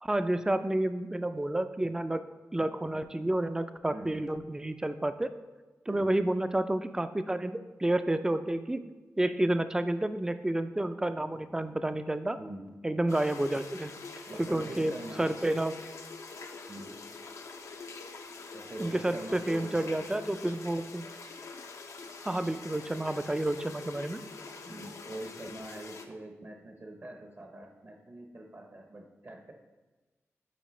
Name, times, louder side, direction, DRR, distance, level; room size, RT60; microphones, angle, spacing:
voice 1, 0.0-2.2 2.5-5.3 5.9-8.8 9.2-12.4 12.8-13.9 14.4-14.9 15.2-15.7 18.8-21.0 22.2-24.2, right 1 dB, 10° right, 10 dB, 0.3 m, -30 dB
voice 2, 3.9-4.3 5.9-6.2 12.4-12.8 14.3-15.3 16.7-17.0 18.5-20.1 24.6-29.5, right 1 dB, 45° right, 3 dB, 0.8 m, -44 dB
sound 1, 13.1-26.1, left 4 dB, 75° left, 0.5 m, -45 dB
8.1 x 4.1 x 3.1 m, 1.2 s
wide cardioid pair, 95°, 5 cm